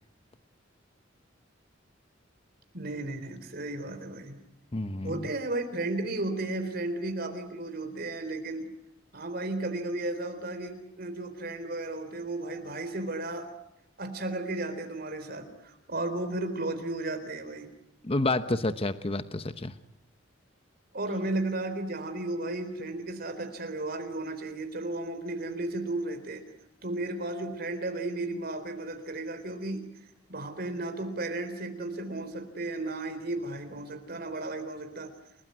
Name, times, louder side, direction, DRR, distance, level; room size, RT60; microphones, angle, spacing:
voice 1, 2.7-4.4 5.0-8.7 9.1-13.5 14.0-17.7 20.9-26.5 26.8-29.9 30.3-35.1, right 2 dB, 55° right, 7 dB, 3.9 m, -34 dB
voice 2, 4.7-5.3 18.0-19.7, left 2 dB, 30° left, 11 dB, 1.0 m, -29 dB
30.0 x 19.0 x 9.6 m, 0.79 s
head